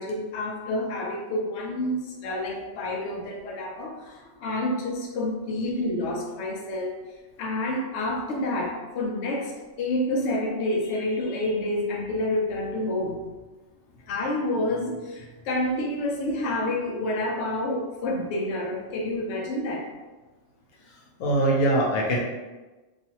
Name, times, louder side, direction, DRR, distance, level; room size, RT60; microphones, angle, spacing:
voice 1, 0.0-7.0 7.4-9.5 9.8-13.2 14.1-19.9, left 1 dB, 70° left, -1 dB, 0.8 m, -28 dB
voice 2, 20.9-22.2, right 1 dB, 85° left, -2 dB, 1.0 m, -23 dB
2.5 x 2.4 x 2.8 m, 1.2 s
omnidirectional pair, 1.3 m